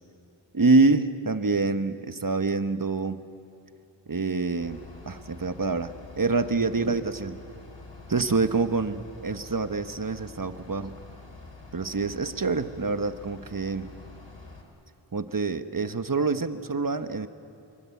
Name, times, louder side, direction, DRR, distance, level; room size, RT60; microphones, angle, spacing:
voice 1, 0.5-3.2 4.1-7.4 8.1-10.9 11.7-13.9 15.1-17.3, right 3 dB, 45° right, 10 dB, 1.1 m, -26 dB
Bus / Idling, 4.6-14.6, left 3 dB, 70° left, 3.7 m, -47 dB
25.0 x 24.0 x 8.3 m, 2.6 s
wide cardioid pair, 45°, 45 cm